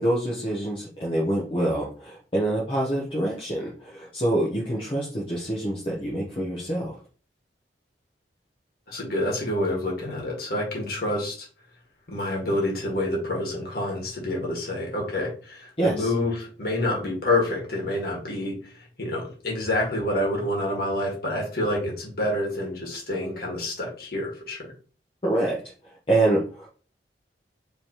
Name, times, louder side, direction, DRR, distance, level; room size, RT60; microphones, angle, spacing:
voice 1, 0.0-7.0 15.8-16.1 25.2-26.7, right 1 dB, 30° left, -3 dB, 0.9 m, -26 dB
voice 2, 8.9-11.5 12.1-18.7 19.0-24.7, left 1 dB, 60° left, -1 dB, 1.7 m, -28 dB
5.0 x 3.3 x 3.0 m, 0.39 s
head